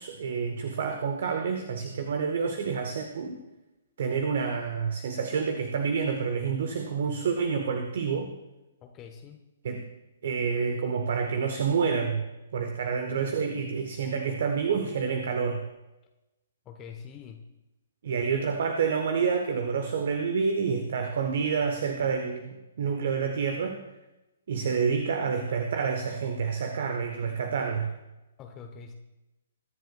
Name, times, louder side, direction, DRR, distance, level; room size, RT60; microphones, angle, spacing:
voice 1, 0.0-3.4 4.0-8.3 9.6-9.8 10.2-12.2 12.5-15.6 18.0-23.8 24.5-27.9, right 6 dB, 50° right, 6 dB, 1.1 m, -28 dB
voice 2, 8.8-9.4 16.6-17.4 28.4-28.9, left 6 dB, 20° left, 4 dB, 1.0 m, -44 dB
23.0 x 10.5 x 2.3 m, 1.0 s
figure-of-eight pair, 125°, 0 cm